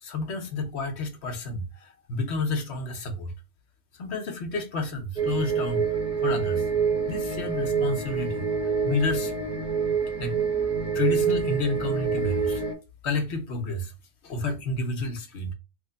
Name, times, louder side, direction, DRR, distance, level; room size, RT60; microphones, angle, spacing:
voice 1, 0.0-3.3 3.9-5.8 6.2-6.7 7.1-8.5 8.8-9.3 10.2-10.4 10.9-12.6 13.0-13.9 14.2-15.5, left 2 dB, 70° left, 1.0 m, -30 dB
sound 1, 5.2-12.7, right 6 dB, 5° right, 0.8 m, -26 dB
3.2 x 2.1 x 3.7 m
omnidirectional pair, 1.2 m